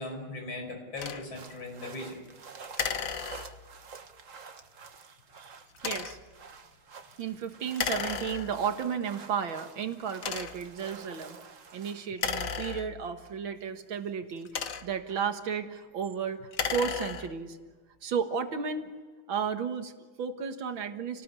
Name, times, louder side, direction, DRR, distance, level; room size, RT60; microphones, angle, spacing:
voice 1, 0.0-2.2, left 2 dB, 70° left, 3 dB, 6.6 m, -39 dB
sound 1, 1.0-1.3 2.7-3.8 5.7-6.3 7.7-8.8 9.4-9.5 10.2-10.8 12.1-13.3 14.2-15.1 16.4-17.5, left 6 dB, 50° left, 1.3 m, -34 dB
sound 2, 1.3-12.1, right 5 dB, 45° right, 1.5 m, -49 dB
voice 2, 5.4-6.2 7.2-11.4 11.7-17.6 18.0-18.9 19.3-21.2, right 6 dB, 70° right, 7 dB, 2.3 m, -33 dB
29.5 x 19.0 x 8.3 m, 1.5 s
omnidirectional pair, 2.2 m